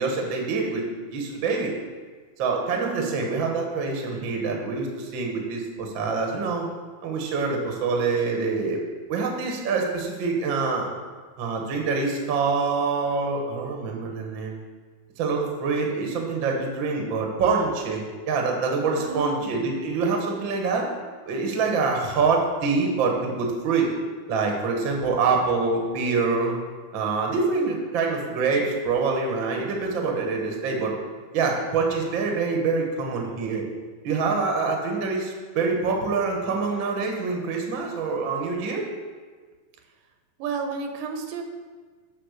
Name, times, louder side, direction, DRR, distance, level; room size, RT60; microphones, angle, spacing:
voice 1, 0.0-1.7 2.4-6.7 7.0-8.8 9.1-10.9 11.4-14.6 15.2-20.9 21.2-23.9 24.3-26.6 26.9-30.9 31.3-33.6 34.0-38.8, right 4 dB, 60° right, 1 dB, 1.3 m, -25 dB
voice 2, 2.7-3.2 19.0-19.6 40.4-41.4, right 4 dB, 80° right, 5 dB, 2.4 m, -32 dB
8.6 x 4.9 x 6.6 m, 1.5 s
omnidirectional pair, 4.0 m